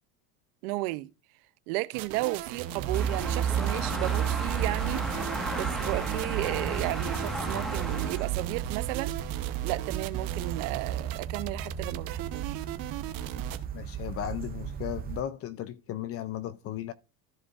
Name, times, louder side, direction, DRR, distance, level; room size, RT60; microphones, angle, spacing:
voice 1, 0.6-1.1 1.7-5.1 5.6-9.1 9.6-12.6, right 20 dB, 85° right, 0.7 m, -33 dB
sound 1, 1.9-13.6, right 13 dB, 50° right, 0.9 m, -38 dB
sound 2, 2.8-15.2, right 10 dB, 20° right, 0.4 m, -33 dB
sound 3, 2.9-8.2, right 1 dB, ahead, 1.4 m, -35 dB
voice 2, 13.7-16.9, left 11 dB, 35° left, 0.4 m, -36 dB
13.5 x 4.9 x 2.4 m
cardioid pair, 135°, 43 cm